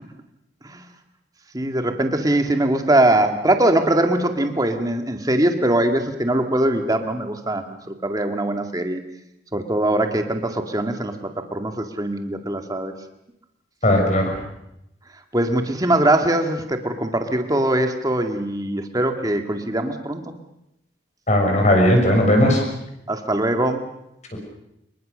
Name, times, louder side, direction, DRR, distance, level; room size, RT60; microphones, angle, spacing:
voice 1, 1.5-9.0 9.5-12.9 15.3-20.2 23.1-23.9, right 1 dB, 20° right, 5 dB, 2.2 m, -22 dB
voice 2, 13.8-14.2 21.3-22.6 24.3-24.4, left 1 dB, 40° left, 2 dB, 6.6 m, -17 dB
25.5 x 22.5 x 6.8 m, 0.82 s
head